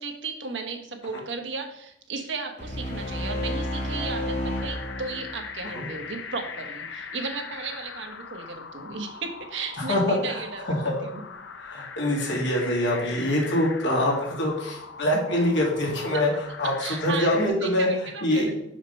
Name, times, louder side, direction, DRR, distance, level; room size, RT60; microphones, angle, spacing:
voice 1, 0.0-10.7 11.0-11.2 16.1-16.2 16.6-17.3 17.6-18.5, right 4 dB, 75° right, 4 dB, 1.0 m, -35 dB
sound 1, 2.6-5.9, left 1 dB, 40° left, 2.3 m, -31 dB
sound 2, 4.5-17.5, left 5 dB, 90° left, 0.8 m, -40 dB
voice 2, 9.8-10.4 10.7-10.9 11.6-16.3 16.6-17.9 18.2-18.5, left 1 dB, 75° left, -2 dB, 2.2 m, -24 dB
5.2 x 5.1 x 5.4 m, 0.76 s
head